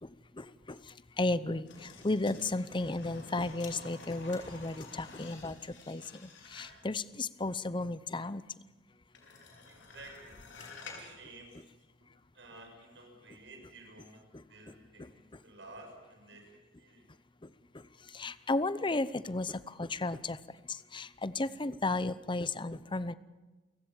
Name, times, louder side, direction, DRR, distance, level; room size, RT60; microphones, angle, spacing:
voice 1, 0.0-8.4 10.6-10.7 14.3-14.4 15.0-15.1 17.4-17.5 17.7-17.9 18.1-20.4 20.7-23.1, left 2 dB, 25° left, 16 dB, 0.7 m, -34 dB
sound 1, 1.7-6.9 9.1-11.1 11.5-11.6, left 3 dB, 75° left, 5.2 m, -50 dB
voice 2, 9.7-10.4 10.9-11.5 12.3-16.5 16.8-17.0, right 2 dB, 75° right, 3 dB, 6.7 m, -53 dB
29.5 x 16.5 x 7.3 m, 1.2 s
head